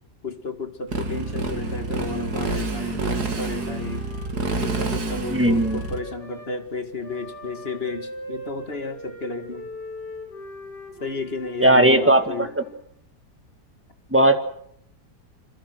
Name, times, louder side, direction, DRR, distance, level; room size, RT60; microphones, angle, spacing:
voice 1, 0.2-4.1 4.6-9.7 11.0-12.5, left 3 dB, 35° left, 8 dB, 2.3 m, -32 dB
Motorcycle, 0.9-6.0, right 3 dB, 70° right, 2.8 m, -28 dB
Wind instrument woodwind instrument, 1.1-6.5 7.0-12.9, equal, 85° left, 7.1 m, -41 dB
voice 2, 5.3-5.8 11.6-12.5 14.1-14.4, right 1 dB, 5° right, 7 dB, 2.0 m, -17 dB
27.5 x 22.5 x 6.2 m, 0.68 s
omnidirectional pair, 1.8 m